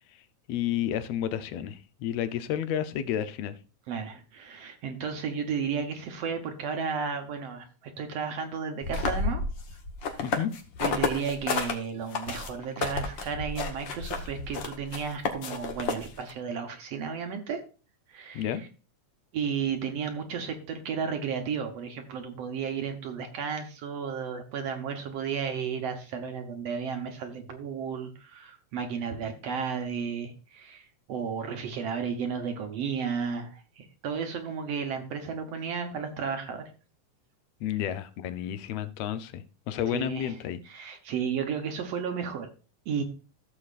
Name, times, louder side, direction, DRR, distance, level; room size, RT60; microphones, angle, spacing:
voice 1, 0.5-3.6 10.2-10.5 18.3-18.6 37.6-40.6, left 10 dB, 70° left, 12 dB, 1.7 m, -31 dB
voice 2, 3.9-9.4 10.1-10.2 10.8-17.6 18.1-18.7 19.3-36.7 39.9-40.3 40.7-42.5 42.9-43.0, right 6 dB, 65° right, 5 dB, 1.9 m, -33 dB
sound 1, 8.8-11.7 12.1-16.3, left 4 dB, 55° left, 1.4 m, -31 dB
15.0 x 7.1 x 2.4 m, 0.34 s
omnidirectional pair, 3.4 m